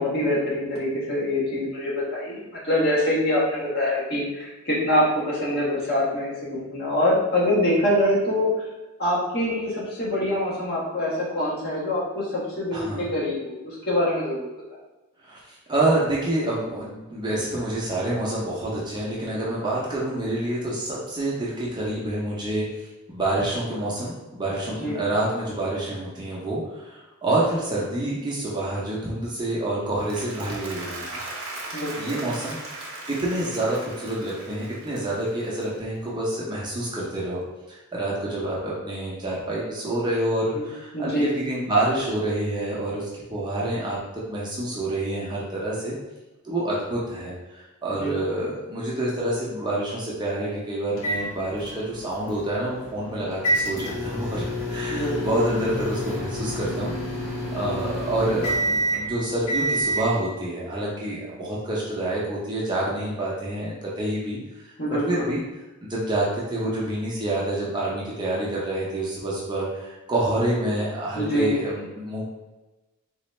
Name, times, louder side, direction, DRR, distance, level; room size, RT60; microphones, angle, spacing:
voice 1, 0.0-8.5 9.0-14.5 24.7-25.0 31.7-32.2 40.5-40.7 40.9-41.3 47.9-48.2 54.9-55.4 64.8-65.3 71.1-71.6, left 1 dB, 45° left, -7 dB, 1.3 m, -25 dB
voice 2, 12.7-13.1 15.2-22.7 23.1-31.1 32.0-37.4 37.7-44.0 44.3-45.9 46.4-56.9 57.5-65.4 65.8-72.3, right 1 dB, 20° right, -6 dB, 0.7 m, -27 dB
Applause, 29.8-36.2, right 2 dB, 70° right, 0.8 m, -38 dB
sound 1, 51.0-60.1, equal, 70° left, 0.8 m, -29 dB
4.0 x 2.5 x 3.2 m, 1.1 s
head